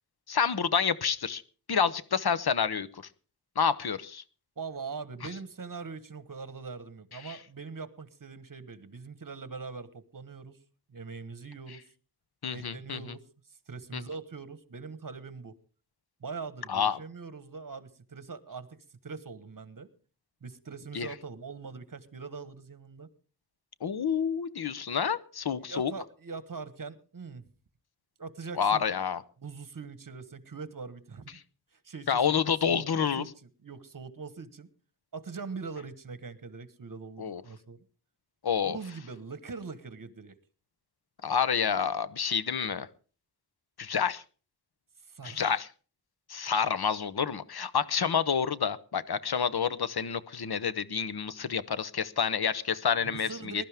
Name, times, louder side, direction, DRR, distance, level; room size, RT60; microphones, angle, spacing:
voice 1, 0.3-1.4 1.7-3.0 3.6-4.2 7.2-7.4 12.4-13.0 13.9-14.0 16.7-17.0 20.9-21.1 23.8-25.9 28.6-29.2 32.1-33.2 37.2-37.4 38.4-38.8 41.2-42.9 43.8-44.2 45.2-45.7 46.3-53.6, left 7 dB, 70° left, 15 dB, 0.9 m, -28 dB
voice 2, 4.6-10.6 10.9-11.8 12.5-13.2 13.7-15.5 16.2-19.9 20.4-23.1 25.7-27.4 28.2-28.9 29.4-31.4 31.8-33.3 33.6-34.7 35.1-37.8 38.6-40.3 45.1-45.4 53.0-53.6, right 4 dB, 55° right, 13 dB, 1.4 m, -42 dB
21.0 x 12.0 x 3.6 m, 0.38 s
wide cardioid pair, 90°, 39 cm